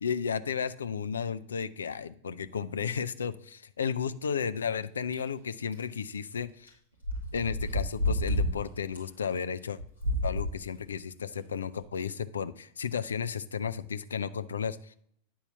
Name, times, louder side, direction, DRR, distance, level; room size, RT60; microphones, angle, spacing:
voice 1, 0.0-6.7 7.3-9.8 10.2-15.0, left 7 dB, 70° left, 13 dB, 0.4 m, -33 dB
sound 1, 5.1-5.2 5.7-5.8 6.7-6.8 7.0-8.5 8.9-9.0 9.8-10.5 11.1-11.2 11.8-11.9, left 1 dB, 85° left, 2.6 m, -29 dB
9.4 x 4.3 x 6.7 m, 0.66 s
figure-of-eight pair, 90°, 0 cm